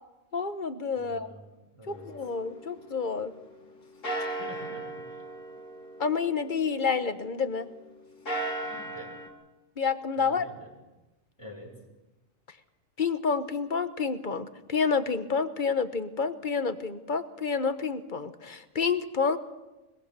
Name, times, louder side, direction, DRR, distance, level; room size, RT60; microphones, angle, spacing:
voice 1, 0.3-1.3 1.9-3.3 6.0-7.6 9.8-10.4 13.0-19.4, left 5 dB, 40° left, 10 dB, 1.2 m, -29 dB
voice 2, 0.9-1.4 1.7-2.3 4.2-5.2 8.6-9.2 10.2-10.7 11.4-11.8, equal, 20° left, -3 dB, 4.9 m, -47 dB
sound 1, 1.9-3.6 4.0-7.6 8.1-9.3, right 1 dB, 70° left, 2.7 m, -38 dB
22.0 x 21.0 x 6.8 m, 1.0 s
omnidirectional pair, 1.4 m